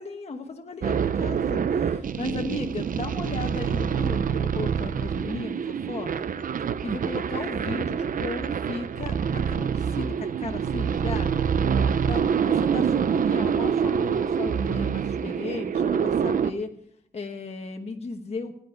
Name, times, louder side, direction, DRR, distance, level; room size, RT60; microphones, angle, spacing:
voice 1, 0.0-6.3 6.8-11.4 12.0-16.8 17.1-18.5, left 3 dB, 40° left, 3 dB, 1.1 m, -35 dB
sound 1, 0.8-16.5, right 7 dB, 50° right, 0.6 m, -26 dB
15.5 x 10.0 x 5.1 m, 0.69 s
wide cardioid pair, 135°, 17 cm